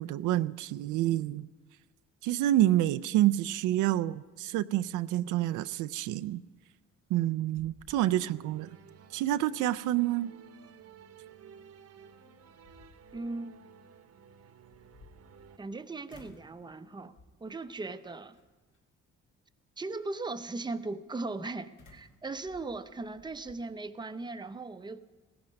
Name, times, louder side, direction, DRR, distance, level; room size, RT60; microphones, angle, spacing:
voice 1, 0.0-1.5 2.2-6.4 7.1-8.7 9.1-10.3, right 14 dB, 90° right, 0.5 m, -28 dB
sound 1, 6.9-7.2 7.5-8.5 8.9-9.0 11.7-11.8 12.4-13.3 14.6-15.7 16.1-16.6 17.1-17.5 18.3-18.8 21.8-23.6, left 3 dB, 75° left, 2.6 m, -58 dB
sound 2, 8.2-15.6, right 7 dB, 55° right, 1.0 m, -54 dB
voice 2, 13.1-13.6 15.6-18.4 19.8-25.0, right 3 dB, 15° right, 0.7 m, -38 dB
16.5 x 15.0 x 5.2 m
cardioid pair, 90°, 30 cm